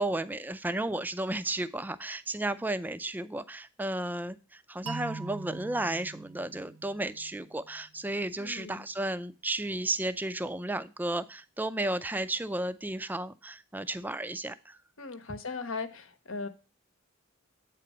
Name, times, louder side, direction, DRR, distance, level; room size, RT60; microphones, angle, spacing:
voice 1, 0.0-14.8 15.3-15.4, right 1 dB, 10° right, 13 dB, 0.4 m, -33 dB
sound 1, 4.9-7.8, right 4 dB, 90° right, 0.7 m, -42 dB
voice 2, 8.4-8.8 15.0-16.5, left 4 dB, 75° left, 9 dB, 1.0 m, -38 dB
8.3 x 4.0 x 5.4 m, 0.32 s
head